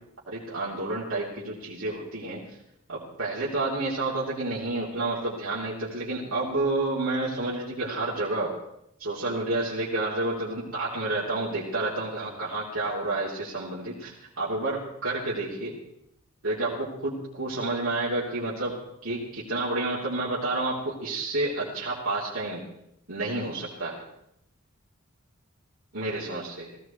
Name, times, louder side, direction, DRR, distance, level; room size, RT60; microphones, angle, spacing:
voice 1, 0.3-2.4 2.9-8.5 9.0-15.7 16.4-18.7 19.0-22.6 23.1-24.0 25.9-26.7, right 2 dB, 80° right, -7 dB, 3.2 m, -30 dB
17.5 x 16.0 x 4.5 m, 0.78 s
head